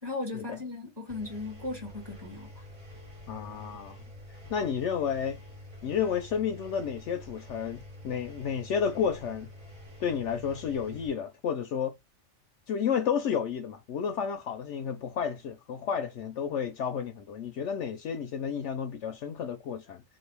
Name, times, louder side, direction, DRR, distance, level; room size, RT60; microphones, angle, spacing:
voice 1, 0.0-2.6, left 2 dB, 20° right, 1.3 m, -37 dB
Engine, 1.1-11.1, left 1 dB, 85° right, 1.7 m, -48 dB
voice 2, 3.3-4.0 4.5-5.4 5.8-9.5 10.0-11.9 12.7-20.0, left 7 dB, 70° left, 0.8 m, -31 dB
3.2 x 2.5 x 3.0 m
omnidirectional pair, 1.4 m